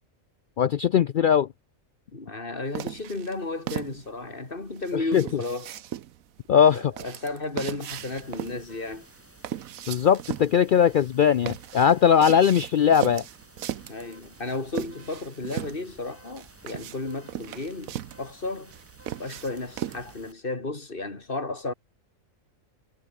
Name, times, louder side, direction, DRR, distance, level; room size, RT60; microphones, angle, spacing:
voice 1, 0.6-1.5 5.1-5.2 6.5-6.9 9.9-13.2, left 8 dB, 75° left, 0.4 m, -20 dB
voice 2, 2.1-5.8 6.7-9.1 13.9-18.7 19.2-21.7, left 2 dB, 40° left, 3.1 m, -33 dB
sound 1, 2.7-20.2, right 11 dB, 80° right, 1.2 m, -38 dB
sound 2, 7.9-20.3, right 1 dB, 10° right, 3.2 m, -54 dB
omnidirectional pair, 1.4 m